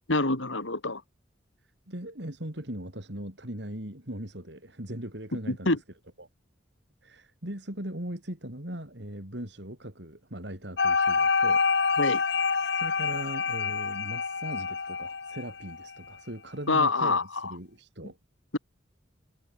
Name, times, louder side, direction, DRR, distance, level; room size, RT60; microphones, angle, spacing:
voice 1, 0.1-1.0 5.5-5.8 12.0-12.2 16.7-17.5, left 3 dB, 85° left, 4.0 m, -26 dB
voice 2, 1.9-5.8 6.2-6.3 7.0-11.6 12.7-18.2, right 1 dB, 60° right, 5.0 m, -39 dB
sound 1, 10.8-15.9, left 5 dB, 60° left, 1.1 m, -27 dB
head